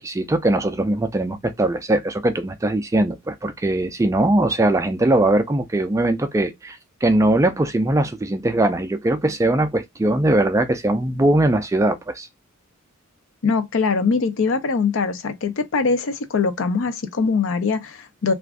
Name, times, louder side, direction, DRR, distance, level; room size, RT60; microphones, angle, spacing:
voice 1, 0.0-12.3, right 1 dB, 15° right, 0.3 m, -20 dB
voice 2, 13.4-18.3, left 4 dB, 65° left, 0.5 m, -22 dB
2.5 x 2.4 x 3.4 m
head